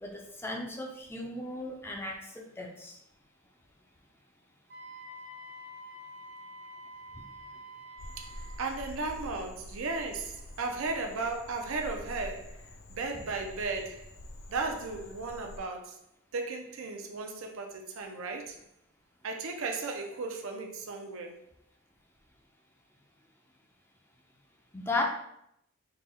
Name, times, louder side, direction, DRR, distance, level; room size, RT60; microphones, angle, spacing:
voice 1, 0.0-3.0 24.7-25.0, left 2 dB, 10° left, 1 dB, 0.5 m, -35 dB
Wind instrument woodwind instrument, 4.7-8.8, equal, 40° right, 0.8 m, -47 dB
Frog, 8.0-15.6, left 1 dB, 60° left, 0.5 m, -47 dB
voice 2, 8.6-14.1 14.5-16.0 16.3-18.6 19.2-21.4, right 3 dB, 70° right, 3 dB, 0.6 m, -35 dB
3.9 x 2.3 x 4.1 m, 0.77 s
head